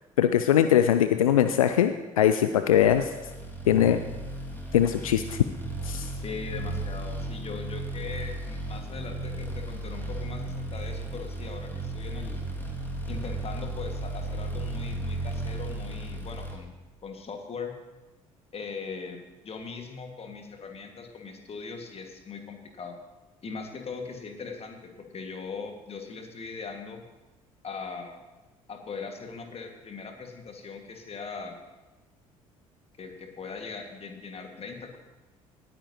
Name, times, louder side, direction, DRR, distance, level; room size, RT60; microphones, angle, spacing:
voice 1, 0.2-3.1 3.7-4.0 4.7-5.4 5.8-6.1, left 10 dB, 80° left, 10 dB, 0.4 m, -21 dB
sound 1, 2.8-16.5, right 2 dB, 10° left, 2.0 m, -35 dB
voice 2, 6.1-12.4 13.1-16.7 17.0-17.8 18.5-19.2 19.4-22.9 23.4-27.0 27.6-28.2 28.7-31.6 33.0-35.0, left 5 dB, 35° left, 4 dB, 1.7 m, -40 dB
18.5 x 9.4 x 2.8 m, 1.1 s
figure-of-eight pair, 55°, 18 cm